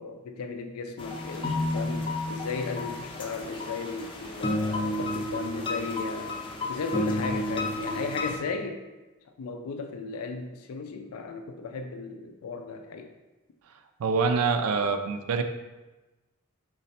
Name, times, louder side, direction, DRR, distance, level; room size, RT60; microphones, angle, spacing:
voice 1, 0.0-6.3 6.7-8.8 9.4-13.1, left 4 dB, 90° left, 6 dB, 0.4 m, -35 dB
sound 1, 1.0-8.4, left 1 dB, 25° left, 0.4 m, -31 dB
voice 2, 14.0-15.4, right 4 dB, 90° right, 7 dB, 0.4 m, -25 dB
4.0 x 3.1 x 4.2 m, 1.1 s
head